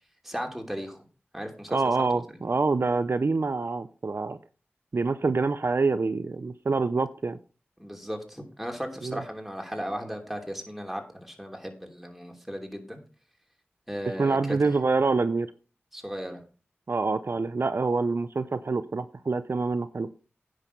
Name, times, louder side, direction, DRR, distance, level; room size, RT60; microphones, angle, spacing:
voice 1, 0.2-1.0 1.3-2.2 7.8-13.0 13.9-14.6 15.9-16.4, equal, 5° right, 3 dB, 3.0 m, -36 dB
voice 2, 1.7-4.4 4.9-7.4 9.0-9.2 14.2-15.5 16.9-20.1, right 3 dB, 60° right, 12 dB, 0.6 m, -26 dB
9.9 x 6.4 x 5.2 m, 0.37 s
cardioid pair, 45°, 4 cm